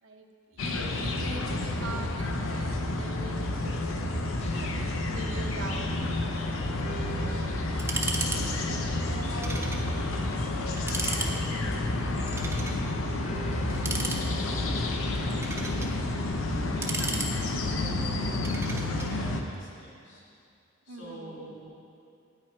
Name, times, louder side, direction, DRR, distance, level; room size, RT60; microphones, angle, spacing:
voice 1, 0.0-3.9 4.5-6.1 8.2-9.6 13.8-14.8 20.9-21.5, right 2 dB, 80° right, 3 dB, 0.9 m, -44 dB
sound 1, 0.6-19.4, left 2 dB, 80° left, 0.7 m, -30 dB
sound 2, 4.4-16.0, left 1 dB, 30° left, 0.6 m, -41 dB
voice 2, 7.1-7.7 9.0-9.5 9.9-10.5 10.7-11.4 12.0-13.2 15.2-15.4 16.3-20.2 20.8-21.7, right 1 dB, 60° left, -5 dB, 2.7 m, -45 dB
sound 3, 7.8-8.4 8.7-8.8 9.4-9.8 10.2-10.3 10.7-11.3 12.3-12.8 13.7-14.6 15.2-15.9 16.6-17.7 18.4-19.1, right 3 dB, 10° right, 0.5 m, -34 dB
9.2 x 9.0 x 4.7 m, 2.5 s
head